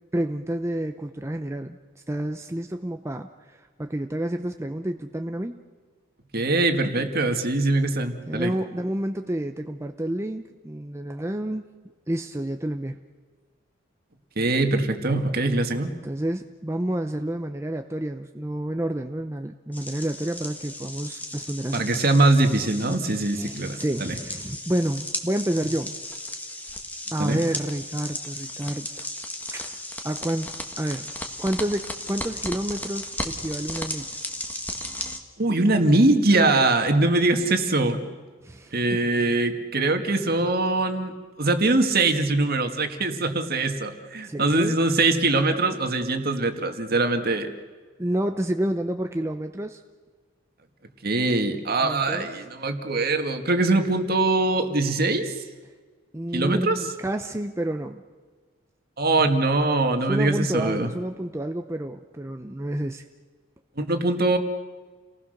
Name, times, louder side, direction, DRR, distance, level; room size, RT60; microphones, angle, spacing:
voice 1, 0.1-1.8 2.1-5.6 8.3-11.7 12.1-13.0 16.0-21.8 23.4-26.0 27.1-29.1 29.5-29.8 30.0-31.1 31.4-34.2 38.4-38.8 44.2-44.8 48.0-49.8 51.8-52.3 56.1-58.0 60.1-63.0, right 1 dB, 15° right, 6 dB, 0.7 m, -29 dB
voice 2, 6.3-8.5 14.4-15.9 21.7-24.2 27.2-27.4 35.4-38.0 38.7-41.1 41.4-47.5 51.0-55.3 56.3-56.9 59.0-60.9 63.8-64.4, right 2 dB, 50° right, 6 dB, 2.0 m, -22 dB
sound 1, 19.7-35.2, left 1 dB, 10° left, 1.7 m, -35 dB
29.5 x 19.0 x 6.6 m, 1.4 s
head